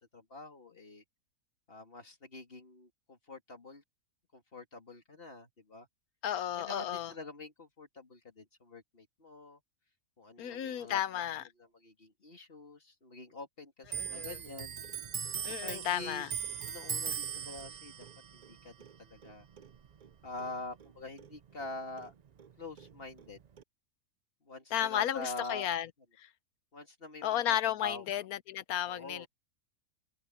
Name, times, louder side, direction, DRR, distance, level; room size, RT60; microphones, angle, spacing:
voice 1, 0.1-1.0 1.7-3.8 4.3-5.9 6.5-9.6 10.2-11.0 11.6-14.8 15.6-16.3 16.6-18.1 18.3-19.5 20.2-22.1 22.6-23.4 24.4-25.7 26.7-28.1 28.9-29.3, left 2 dB, 40° left, 3.0 m, -46 dB
voice 2, 6.2-7.1 10.4-11.4 13.9-14.4 15.4-16.3 24.7-25.9 26.2-26.3 27.2-29.3, left 11 dB, 80° left, 1.2 m, -33 dB
Clock, 13.9-20.9 21.2-22.5 22.8-23.6, right 7 dB, 75° right, 0.3 m, -40 dB
omnidirectional pair, 1.5 m